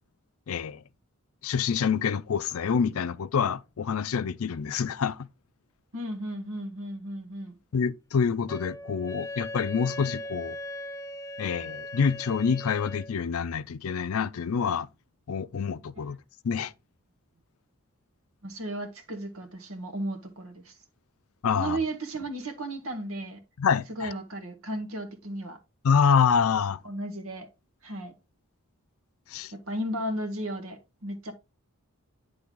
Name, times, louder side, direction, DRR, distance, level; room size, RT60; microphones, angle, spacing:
voice 1, 0.5-0.8 1.4-5.3 7.7-10.6 11.4-14.9 15.3-16.2 16.4-16.7 21.4-21.8 23.6-24.1 25.8-26.8 29.3-29.5, left 6 dB, 80° left, 0.4 m, -26 dB
voice 2, 5.9-7.6 18.4-20.8 21.5-23.4 23.9-25.6 26.8-27.5 27.8-28.1 29.5-31.3, right 1 dB, 80° right, 1.4 m, -34 dB
Wind instrument woodwind instrument, 8.5-13.1, left 1 dB, 15° left, 0.4 m, -39 dB
10.0 x 3.4 x 3.7 m
head